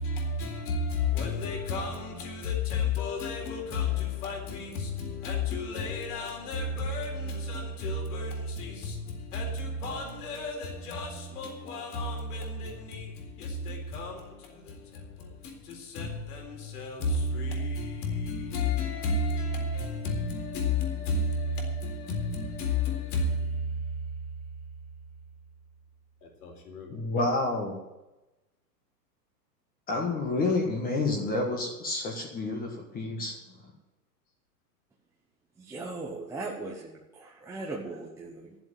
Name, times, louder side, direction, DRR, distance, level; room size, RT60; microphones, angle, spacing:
voice 1, 0.0-25.1 26.2-26.9, left 2 dB, 65° left, 3.9 m, -32 dB
voice 2, 26.9-27.8 29.9-33.3 33.6-33.7, left 2 dB, 15° left, 1.6 m, -29 dB
voice 3, 35.6-38.6, right 3 dB, 5° right, 0.9 m, -38 dB
12.0 x 7.6 x 9.2 m
hypercardioid pair, 150°, 49 cm